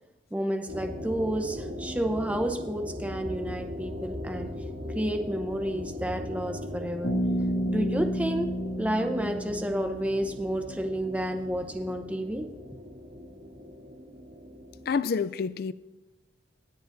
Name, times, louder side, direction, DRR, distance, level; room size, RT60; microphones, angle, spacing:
voice 1, 0.3-4.5 4.9-7.1 7.7-12.5, equal, 5° right, 0.7 m, -30 dB
sound 1, 0.7-15.0, left 1 dB, 75° right, 2.8 m, -39 dB
Bass guitar, 7.0-10.7, equal, 75° left, 1.7 m, -31 dB
voice 2, 14.9-15.7, left 5 dB, 55° left, 0.3 m, -28 dB
21.5 x 7.9 x 2.6 m
head